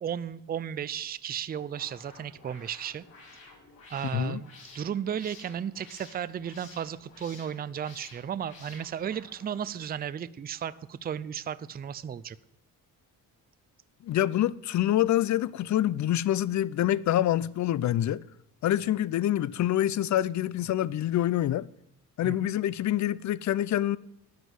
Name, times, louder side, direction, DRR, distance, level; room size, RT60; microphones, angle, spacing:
voice 1, 0.0-3.0 3.9-12.4 22.2-22.5, right 9 dB, 25° right, 0.4 m, -34 dB
sound 1, 1.6-9.8, left 3 dB, 75° left, 6.9 m, -52 dB
voice 2, 14.0-18.2 18.6-21.7 22.2-24.0, left 12 dB, 50° left, 0.5 m, -26 dB
13.5 x 9.4 x 6.3 m
cardioid pair, 130°, 36 cm